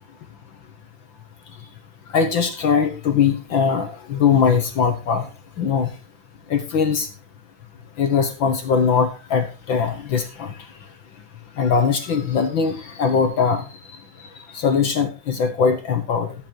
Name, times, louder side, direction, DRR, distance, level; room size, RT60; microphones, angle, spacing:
voice 1, 2.1-5.3 5.6-5.9 6.5-7.1 8.0-10.5 11.6-13.7 14.2-16.3, left 6 dB, 60° left, 6 dB, 1.4 m, -21 dB
12.0 x 7.9 x 4.5 m, 0.32 s
omnidirectional pair, 3.4 m